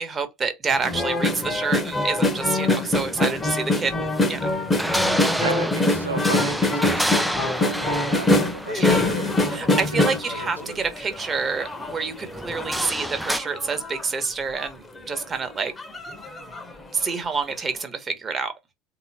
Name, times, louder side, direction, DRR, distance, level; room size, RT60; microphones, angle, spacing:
voice 1, 0.0-4.5 5.4-5.5 8.7-9.1 9.5-15.7 16.9-18.5, right 4 dB, 30° right, 1.3 m, -28 dB
sound 1, 0.7-13.4, equal, ahead, 0.5 m, -31 dB
sound 2, 0.8-11.2 11.6-14.0 14.6-14.7 15.0-15.2 15.8-16.7 17.1-17.2, left 2 dB, 20° left, 1.1 m, -24 dB
voice 2, 5.2-10.8, right 3 dB, 90° right, 0.6 m, -35 dB
3.7 x 3.0 x 4.3 m
figure-of-eight pair, 65°, 0 cm